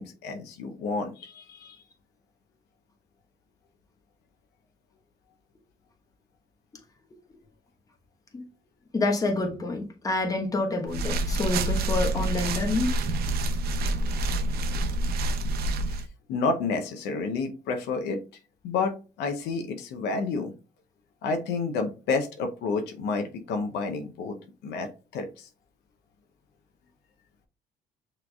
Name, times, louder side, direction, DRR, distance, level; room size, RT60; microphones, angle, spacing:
voice 1, 0.0-1.8 16.3-18.2 18.6-20.5 21.2-24.4 24.6-25.5, left 4 dB, 85° left, 0.7 m, -30 dB
voice 2, 8.9-12.9, left 2 dB, 20° left, 1.1 m, -28 dB
sound 1, 10.9-16.1, right 1 dB, 65° right, 0.7 m, -27 dB
6.0 x 3.2 x 2.3 m
cardioid pair, 110°, 17 cm